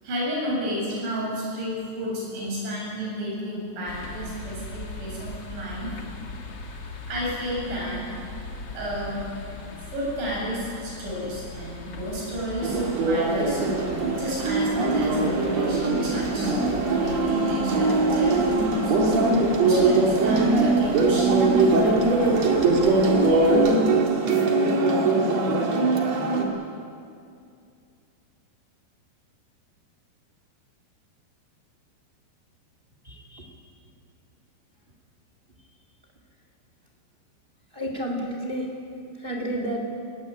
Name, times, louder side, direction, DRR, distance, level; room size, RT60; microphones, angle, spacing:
voice 1, 0.0-5.9 7.1-8.0 8.7-9.5 9.8-13.6 14.1-16.5 17.0-19.2 19.6-22.4, equal, 85° right, -4 dB, 9.9 m, -32 dB
sound 1, 3.8-23.8, left 3 dB, 55° left, 1.1 m, -40 dB
sound 2, 12.6-26.4, right 3 dB, 45° right, 2.8 m, -21 dB
voice 2, 33.0-33.5 37.7-38.7 39.2-39.9, equal, 30° right, 2 dB, 1.0 m, -31 dB
20.5 x 17.0 x 9.9 m, 2.4 s
omnidirectional pair, 5.1 m